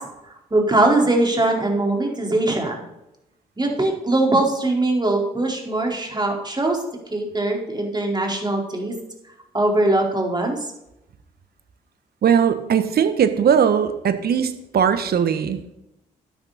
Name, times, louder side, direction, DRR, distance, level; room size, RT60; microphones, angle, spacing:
voice 1, 0.5-2.8 3.6-6.8 7.1-8.9 9.5-10.6, right 2 dB, 25° right, 0 dB, 4.5 m, -21 dB
voice 2, 12.2-15.6, right 7 dB, 60° right, 10 dB, 1.5 m, -19 dB
12.5 x 9.8 x 4.3 m, 0.86 s
hypercardioid pair, 40°, 18 cm